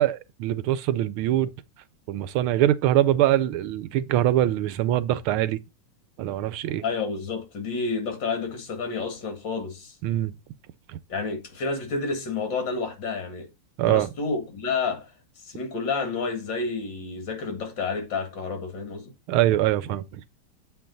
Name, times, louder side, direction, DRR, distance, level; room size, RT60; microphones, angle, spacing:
voice 1, 0.0-1.5 2.1-5.6 6.2-6.8 10.0-10.3 10.9-11.0 13.8-14.1 19.3-20.2, right 13 dB, 90° right, 1.5 m, -23 dB
voice 2, 6.8-10.0 11.1-13.5 13.8-15.1 15.4-19.1, left 4 dB, 60° left, 2.4 m, -30 dB
7.8 x 4.6 x 3.9 m
omnidirectional pair, 2.3 m